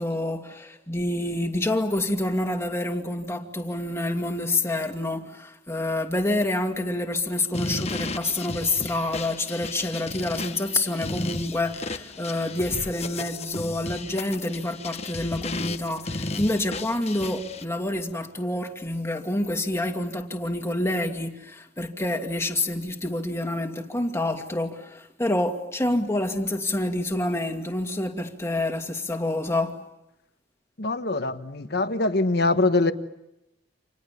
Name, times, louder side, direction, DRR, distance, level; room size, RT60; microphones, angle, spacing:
voice 1, 0.0-29.8, left 1 dB, 15° left, 2.4 m, -27 dB
sound 1, 7.5-17.6, left 3 dB, 35° left, 1.2 m, -34 dB
voice 2, 30.8-32.9, left 2 dB, 55° left, 1.3 m, -23 dB
29.5 x 27.5 x 7.0 m
head